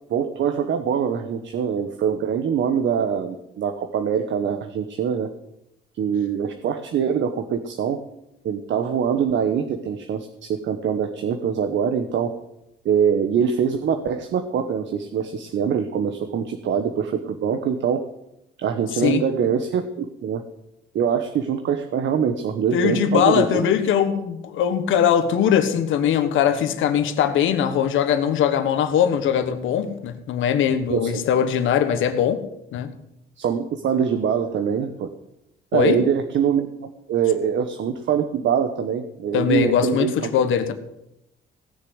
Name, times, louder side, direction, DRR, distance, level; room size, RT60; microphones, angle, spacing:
voice 1, 0.1-5.3 6.0-8.0 8.4-12.3 12.8-18.0 18.6-20.4 20.9-23.7 30.9-31.2 33.4-35.1 35.7-36.7 37.1-40.3, right 7 dB, 70° right, 7 dB, 1.1 m, -23 dB
voice 2, 22.7-32.4 32.7-32.9 35.7-36.0 39.3-40.7, left 8 dB, 80° left, 9 dB, 1.4 m, -21 dB
17.5 x 6.6 x 8.0 m, 0.86 s
cardioid pair, 90°, 20 cm